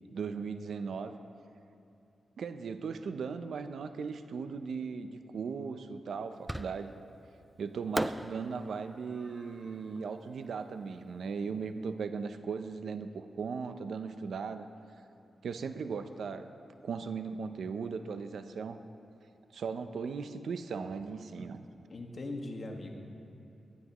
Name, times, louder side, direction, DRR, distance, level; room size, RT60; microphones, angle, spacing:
voice 1, 0.1-1.2 2.4-6.9 7.6-14.7 15.4-16.5 16.8-18.8 19.5-21.7, right 5 dB, 80° right, 9 dB, 0.6 m, -38 dB
Fireworks, 6.5-7.1 7.9-11.1, right 1 dB, 10° right, 0.4 m, -39 dB
voice 2, 21.9-22.9, left 2 dB, 50° left, 1 dB, 1.7 m, -40 dB
19.5 x 13.0 x 3.0 m, 2.8 s
cardioid pair, 90°, 0 cm